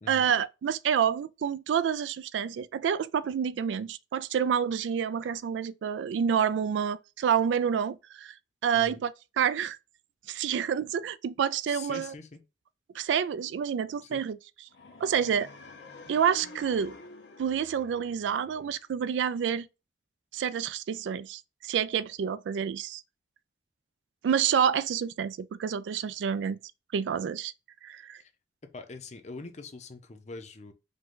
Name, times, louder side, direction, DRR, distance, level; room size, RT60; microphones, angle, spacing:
voice 1, 0.1-8.3 8.6-9.1 9.4-9.8 10.3-12.1 12.9-14.4 15.0-15.5 16.1-17.0 17.4-19.7 20.3-23.0 24.2-26.6 26.9-27.5 27.8-28.2, right 8 dB, 90° right, 0.3 m, -28 dB
voice 2, 11.7-12.4 14.0-14.2 28.2-28.3 28.6-30.7, left 3 dB, 40° left, 0.6 m, -43 dB
sound 1, 14.7-18.8, left 3 dB, 75° left, 0.8 m, -48 dB
5.2 x 2.2 x 3.7 m
head